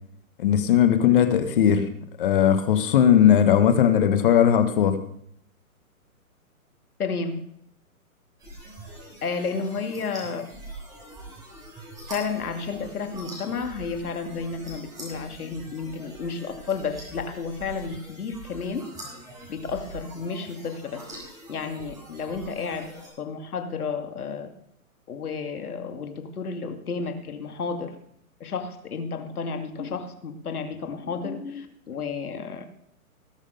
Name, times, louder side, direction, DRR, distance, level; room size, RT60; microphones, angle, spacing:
voice 1, 0.4-1.8 2.2-5.0, left 9 dB, 35° left, 10 dB, 1.2 m, -18 dB
voice 2, 7.0-7.4 9.2-10.4 12.1-18.9 19.5-21.0 21.5-24.5 25.1-28.0 28.4-32.6, left 5 dB, 85° left, 6 dB, 2.5 m, -32 dB
sound 1, 8.4-23.1, right 1 dB, 10° right, 3.4 m, -43 dB
19.0 x 6.3 x 5.2 m, 0.70 s
hypercardioid pair, 160°, 43 cm